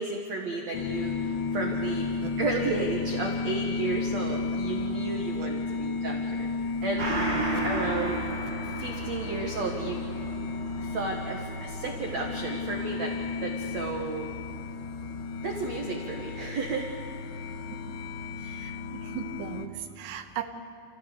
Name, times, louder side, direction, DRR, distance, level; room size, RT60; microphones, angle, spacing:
voice 1, 0.0-2.1 2.4-6.5 6.8-7.1 7.6-8.2 8.6-10.0 10.8-13.2 13.4-14.3 15.4-16.9, right 3 dB, 60° right, 1 dB, 1.9 m, -33 dB
sound 1, 0.7-19.7, left 4 dB, 90° left, 3.2 m, -33 dB
Gong, 7.0-15.9 16.3-16.4, right 2 dB, 30° right, 5.8 m, -36 dB
voice 2, 18.4-20.4, right 10 dB, 75° right, 4 dB, 3.2 m, -38 dB
29.0 x 16.0 x 6.9 m, 2.6 s
omnidirectional pair, 5.1 m